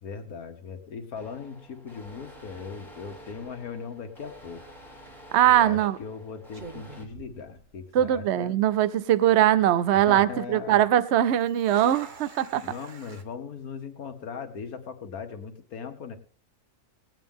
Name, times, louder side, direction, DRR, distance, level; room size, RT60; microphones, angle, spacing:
voice 1, 0.0-4.6 5.5-8.6 10.1-10.8 12.6-16.2, left 6 dB, 70° left, 1.8 m, -39 dB
sound 1, 1.1-7.1, equal, ahead, 2.5 m, -49 dB
sound 2, 5.0-5.3 6.0-6.2 6.5-8.1 8.4-8.5 9.1-9.5 11.2-13.2, right 4 dB, 35° right, 1.0 m, -47 dB
voice 2, 5.3-6.0 7.9-12.6, right 11 dB, 55° right, 0.8 m, -21 dB
19.5 x 9.1 x 3.6 m
omnidirectional pair, 1.6 m